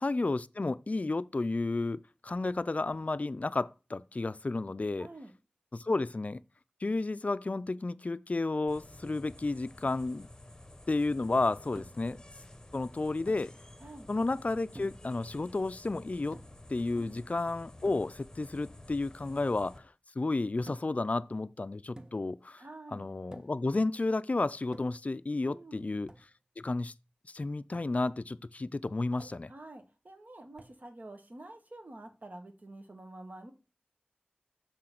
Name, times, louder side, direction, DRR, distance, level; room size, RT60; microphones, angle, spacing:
voice 1, 0.0-5.1 5.7-6.4 6.8-10.3 10.9-12.2 12.7-13.5 14.1-16.4 16.7-22.6 22.9-26.1 26.6-26.9 27.3-29.5, left 3 dB, 45° left, 0.3 m, -32 dB
voice 2, 5.0-5.3 13.8-14.1 16.9-17.2 22.6-23.1 25.4-25.9 29.5-33.5, right 2 dB, 55° right, 1.2 m, -48 dB
sound 1, 8.7-19.8, left 1 dB, 20° left, 1.0 m, -52 dB
sound 2, 11.7-12.2 13.3-13.5 14.7-15.1 16.3-16.7 17.8-18.1 20.7-21.0 22.0-22.4 23.3-23.7 24.7-25.1 26.1-26.3 27.7-28.0 29.2-29.5 30.6-30.8, right 1 dB, 25° right, 0.6 m, -51 dB
6.6 x 3.9 x 5.7 m
wide cardioid pair, 45°, 3 cm